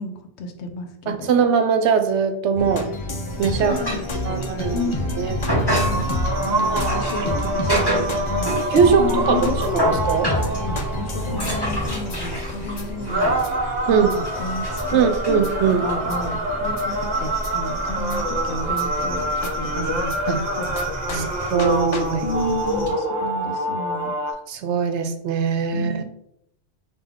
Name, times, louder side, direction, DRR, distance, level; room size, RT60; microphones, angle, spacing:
voice 1, 0.0-1.3 3.6-4.4 4.7-5.2 5.5-8.5 8.8-9.9 10.7-13.4 14.0-21.3 22.2-24.2 25.7-26.0, left 2 dB, 70° left, 6 dB, 0.9 m, -32 dB
voice 2, 1.1-2.9 3.4-3.8 4.2-4.9 5.2-5.3 6.7-6.9 7.3-8.1 8.7-10.3 13.9-14.1 14.9-15.8 20.3-20.4 21.1-21.2 21.5-22.2 24.5-25.9, right 6 dB, 75° right, 8 dB, 0.9 m, -21 dB
sound 1, 2.6-20.2 20.8-20.9 21.1-21.2 21.6-21.7 21.9-22.0, left 2 dB, 40° left, 0.4 m, -31 dB
sound 2, 3.3-22.9, equal, 20° left, 1.5 m, -30 dB
sound 3, 5.7-24.3, right 1 dB, 45° right, 0.7 m, -26 dB
5.3 x 2.5 x 3.6 m, 0.73 s
omnidirectional pair, 1.2 m